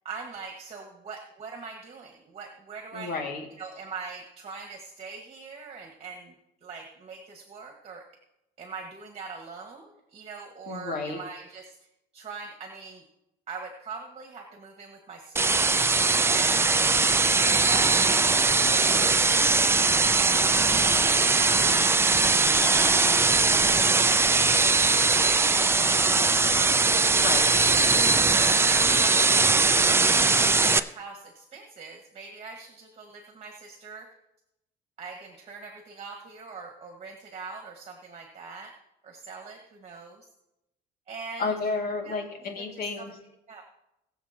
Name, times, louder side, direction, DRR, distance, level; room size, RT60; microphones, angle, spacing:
voice 1, 0.1-3.1 3.6-6.3 6.6-8.1 8.6-11.8 12.1-13.0 13.5-17.0 17.7-19.2 20.1-20.6 21.4-23.1 23.9-26.5 26.8-27.2 27.6-29.6 30.3-34.1 35.0-38.7 39.0-40.3 41.1-41.5 42.0-42.2 42.6-43.1 43.5-43.6, right 4 dB, 40° right, 2 dB, 1.7 m, -42 dB
voice 2, 2.9-3.5 10.7-11.2 27.1-27.5 41.4-43.1, left 4 dB, 60° left, 2 dB, 2.4 m, -31 dB
sound 1, 15.4-30.8, right 3 dB, 15° right, 0.5 m, -21 dB
21.5 x 7.3 x 3.0 m, 0.85 s
cardioid pair, 110°, 17 cm